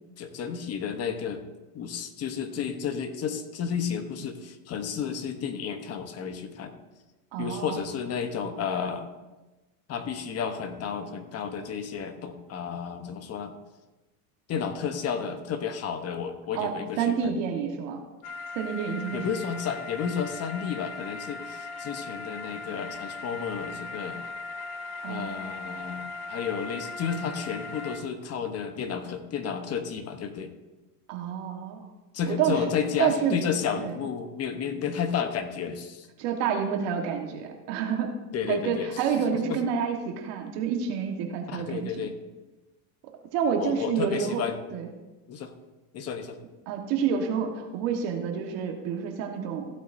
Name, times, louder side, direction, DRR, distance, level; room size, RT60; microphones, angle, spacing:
voice 1, 0.2-1.4 1.7-6.7 7.4-9.1 9.9-13.6 14.5-17.3 19.1-24.2 25.1-30.5 32.1-36.1 38.3-38.9 39.3-39.6 41.5-42.2 43.6-44.6 45.3-45.5 45.9-46.4, left 7 dB, 30° left, 8 dB, 1.0 m, -32 dB
voice 2, 7.3-7.8 16.5-18.0 18.5-19.2 25.0-25.4 31.1-31.8 32.3-32.6 33.0-33.4 33.8-33.9 36.2-38.1 38.5-42.1 43.3-44.4 44.7-44.9 46.7-49.7, right 7 dB, 60° right, 3 dB, 1.6 m, -28 dB
sound 1, 18.2-28.0, left 3 dB, 65° left, 1.3 m, -38 dB
15.0 x 8.0 x 2.7 m, 1.1 s
supercardioid pair, 130°, 47 cm